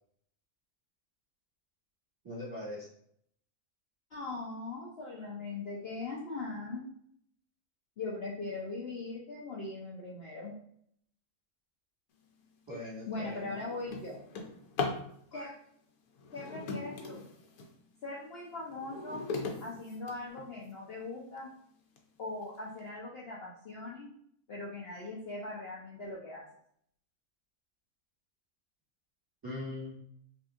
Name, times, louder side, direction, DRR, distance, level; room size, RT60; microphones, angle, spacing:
voice 1, 2.2-2.9 12.7-13.5 29.4-29.9, left 1 dB, 15° right, -7 dB, 1.5 m, -40 dB
voice 2, 4.1-6.9 8.0-10.5 13.1-14.2 15.3-15.5 16.3-17.2 18.0-19.2 19.6-21.5 22.2-24.1 24.5-26.4, left 3 dB, 55° left, -5 dB, 0.8 m, -40 dB
Drawer open or close, 12.4-12.6 13.1-15.1 16.2-17.8 18.3-20.7 21.4-21.5 22.0-22.1 22.4-22.8, left 4 dB, 85° left, 1.1 m, -39 dB
5.2 x 2.7 x 2.4 m, 0.66 s
omnidirectional pair, 1.5 m